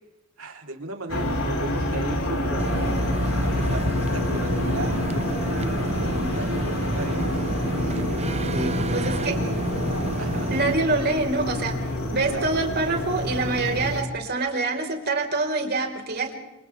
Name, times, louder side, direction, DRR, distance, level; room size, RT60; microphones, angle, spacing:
voice 1, 0.4-9.4 10.2-10.5 12.3-12.5, right 2 dB, 85° right, 2 dB, 3.6 m, -36 dB
sound 1, 1.1-14.0, left 1 dB, 85° left, 4.7 m, -27 dB
sound 2, 2.6-10.8, right 2 dB, 30° right, 0.9 m, -30 dB
voice 2, 6.0-6.3 8.5-9.4 10.5-16.3, right 3 dB, 50° right, 2 dB, 4.6 m, -26 dB
28.0 x 27.5 x 3.5 m, 1.0 s
head